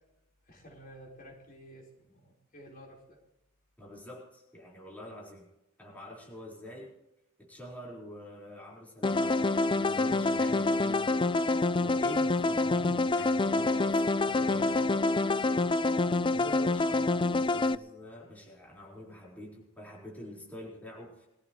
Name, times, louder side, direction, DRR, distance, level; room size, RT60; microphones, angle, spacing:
voice 1, 0.4-3.2 11.8-12.4 14.2-15.5, equal, 40° left, -1 dB, 4.1 m, -50 dB
voice 2, 3.8-5.5 5.8-7.0 7.4-11.5 11.8-14.7 16.3-21.3, left 1 dB, 10° left, -4 dB, 4.4 m, -46 dB
sound 1, 9.0-17.7, left 2 dB, 25° left, 0.5 m, -27 dB
22.5 x 15.0 x 3.1 m, 0.91 s
head